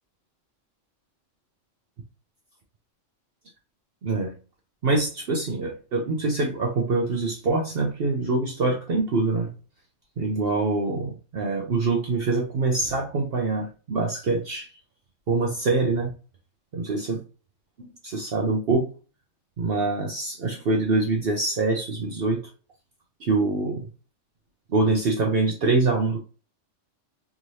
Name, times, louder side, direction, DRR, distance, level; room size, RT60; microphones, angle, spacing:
voice 1, 4.0-4.3 4.8-9.5 10.2-14.7 15.3-16.1 16.7-17.2 18.0-18.9 19.6-22.4 23.2-23.9 24.7-26.2, right 3 dB, 55° right, 2 dB, 0.9 m, -24 dB
3.6 x 2.6 x 3.1 m, 0.35 s
omnidirectional pair, 1.3 m